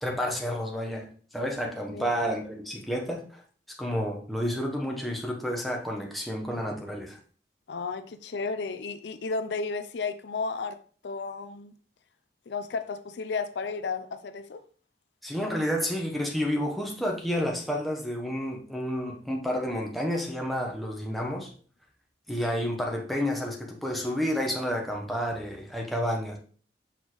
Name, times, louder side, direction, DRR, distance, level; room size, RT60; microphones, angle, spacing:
voice 1, 0.0-3.4 3.7-7.2 15.2-21.5 22.3-26.4, equal, ahead, 0.9 m, -30 dB
voice 2, 1.9-2.3 7.7-10.8 11.0-11.7 12.5-14.6, left 4 dB, 70° left, 0.5 m, -33 dB
5.9 x 5.2 x 3.1 m
head